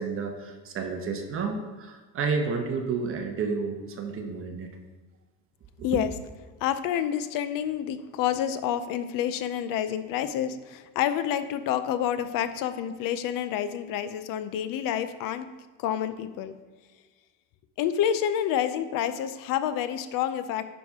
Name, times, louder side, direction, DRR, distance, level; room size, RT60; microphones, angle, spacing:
voice 1, 0.0-4.7, right 4 dB, 35° right, 4 dB, 1.0 m, -31 dB
voice 2, 6.6-15.5 15.8-16.5 17.8-20.7, left 10 dB, 65° left, 11 dB, 0.6 m, -28 dB
9.5 x 6.0 x 3.6 m, 1.3 s
cardioid pair, 165°, 35 cm